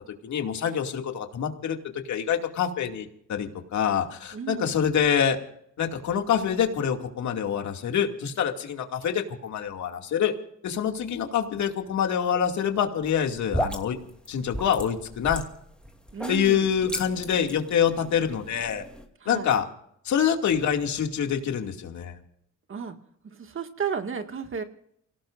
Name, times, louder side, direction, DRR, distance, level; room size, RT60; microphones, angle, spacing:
voice 1, 0.2-5.4 5.8-10.3 10.6-14.0 14.3-15.4 16.3-18.8 19.3-19.7 20.0-22.2, left 8 dB, 70° left, 4 dB, 2.5 m, -26 dB
voice 2, 4.3-4.8 16.1-16.7 19.2-19.5 22.7-23.0 23.2-24.6, right 7 dB, 45° right, 6 dB, 2.0 m, -33 dB
sound 1, 13.0-19.1, equal, 5° left, 2.7 m, -35 dB
28.5 x 18.0 x 2.6 m, 0.72 s
cardioid pair, 90°, 30 cm